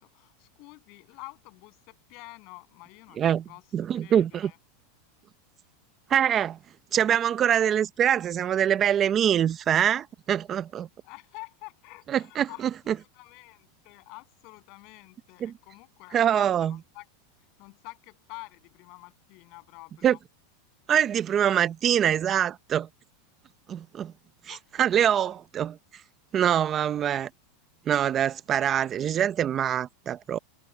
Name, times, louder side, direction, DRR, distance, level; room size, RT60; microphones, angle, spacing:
voice 1, 0.0-3.2 3.5-4.6 11.0-12.6 13.0-17.1 17.6-20.2 24.5-24.6 25.2-25.4 28.2-28.6, left 27 dB, 50° left, 7.4 m, -48 dB
voice 2, 3.7-4.5 6.1-6.6 6.9-10.9 12.1-12.5 12.9-13.0 15.4-15.5 16.1-16.8 20.0-20.2 20.9-22.9 23.7-24.1 24.5-25.8 26.3-27.3 27.9-30.4, right 9 dB, 30° right, 0.6 m, -24 dB
supercardioid pair, 135°, 0 cm